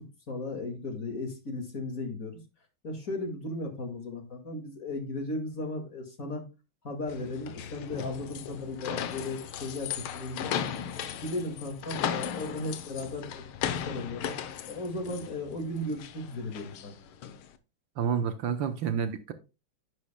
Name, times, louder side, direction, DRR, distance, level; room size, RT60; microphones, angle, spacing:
voice 1, 0.3-2.4 2.8-6.4 6.8-10.5 11.2-13.4 13.9-14.3 14.7-16.9, left 2 dB, 40° left, 2.3 m, -36 dB
sound 1, 7.1-17.5, left 9 dB, 80° left, 1.8 m, -36 dB
voice 2, 18.0-19.3, right 7 dB, 70° right, 1.5 m, -29 dB
10.5 x 9.5 x 2.2 m
omnidirectional pair, 2.3 m